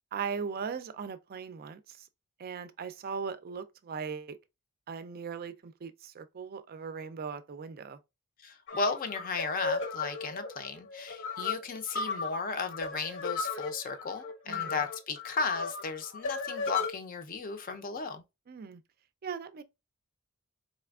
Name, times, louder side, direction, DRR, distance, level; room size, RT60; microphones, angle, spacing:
voice 1, 0.1-2.1 2.4-4.4 4.9-8.0 14.5-14.8 18.5-18.8 19.2-19.6, right 6 dB, 45° right, 0.4 m, -39 dB
voice 2, 8.4-18.2, left 4 dB, 40° left, 0.5 m, -35 dB
sound 1, 8.7-16.9, left 4 dB, 60° left, 0.9 m, -35 dB
4.2 x 3.3 x 2.3 m
head